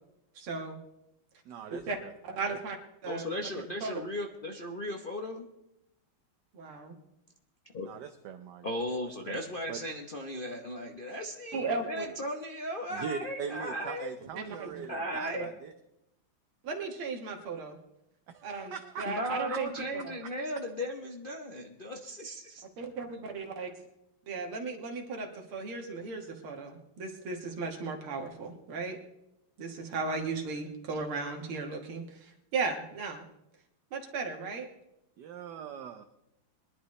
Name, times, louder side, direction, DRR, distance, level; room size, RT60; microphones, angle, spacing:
voice 1, 0.4-0.8 1.7-2.0 2.2-2.8 3.0-3.3 3.8-4.0 6.5-7.0 11.5-12.1 14.3-14.7 15.3-15.5 16.6-17.8 18.4-19.7 22.8-23.7 24.3-29.0 29.6-33.3 33.9-34.7, right 4 dB, 80° right, 2 dB, 2.3 m, -36 dB
voice 2, 1.4-2.6 7.8-8.7 9.2-9.4 9.7-9.8 12.9-15.7 18.3-19.8 20.2-20.3 35.2-36.0, right 7 dB, 65° right, 7 dB, 1.2 m, -41 dB
voice 3, 3.1-5.4 7.7-7.9 8.6-14.1 14.9-15.5 19.0-22.6, left 1 dB, 45° left, 0 dB, 0.7 m, -36 dB
22.0 x 11.0 x 3.2 m, 0.85 s
omnidirectional pair, 2.3 m